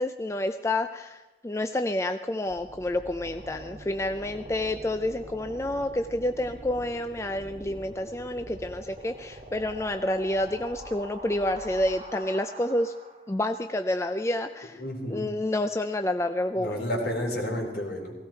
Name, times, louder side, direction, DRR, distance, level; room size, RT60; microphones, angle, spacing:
voice 1, 0.0-12.9 13.3-14.8 15.1-16.7, left 1 dB, 15° left, 8 dB, 0.4 m, -29 dB
sound 1, 2.5-13.4, right 1 dB, 40° right, 1.9 m, -44 dB
voice 2, 14.8-15.3 16.6-18.1, equal, 65° left, -1 dB, 4.1 m, -31 dB
17.0 x 17.0 x 4.4 m, 1.1 s
head